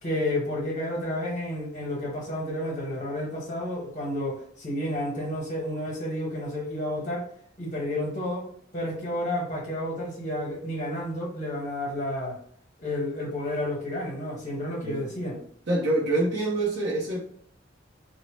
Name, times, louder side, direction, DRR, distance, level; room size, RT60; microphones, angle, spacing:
voice 1, 0.0-7.3 7.6-8.5 8.7-12.4 12.8-15.4, left 1 dB, 40° left, -3 dB, 1.1 m, -31 dB
voice 2, 14.8-15.3 15.7-17.2, right 2 dB, 60° right, -5 dB, 0.7 m, -26 dB
2.6 x 2.0 x 3.2 m, 0.63 s
head